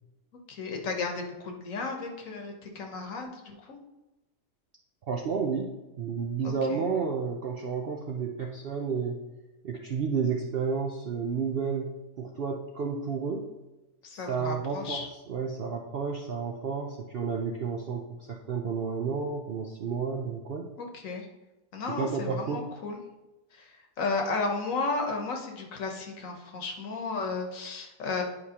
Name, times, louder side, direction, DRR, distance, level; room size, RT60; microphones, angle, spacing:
voice 1, 0.5-3.8 6.4-6.8 14.0-15.1 20.8-21.3 21.7-23.0 23.5-28.2, left 3 dB, 65° left, 3 dB, 1.3 m, -34 dB
voice 2, 5.1-9.2 9.6-13.5 14.1-20.7 21.9-22.8, right 5 dB, 60° right, 1 dB, 0.6 m, -31 dB
9.7 x 4.8 x 2.8 m, 1.0 s
omnidirectional pair, 1.6 m